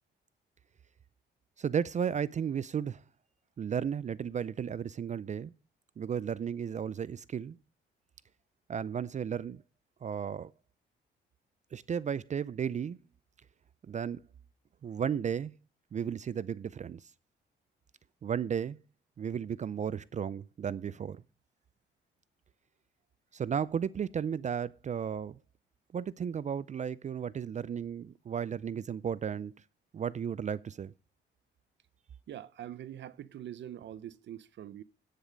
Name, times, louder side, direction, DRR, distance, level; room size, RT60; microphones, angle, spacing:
voice 1, 1.6-3.0 3.6-5.5 6.0-7.6 8.7-9.6 10.0-10.5 11.7-13.0 13.9-14.2 14.8-15.5 15.9-17.1 18.2-18.8 19.2-21.2 23.3-25.4 25.9-29.5 29.9-30.9, right 7 dB, 35° right, 0.4 m, -34 dB
voice 2, 32.3-34.8, right 11 dB, 65° right, 0.8 m, -44 dB
10.0 x 9.4 x 5.2 m
cardioid pair, 90°, 20 cm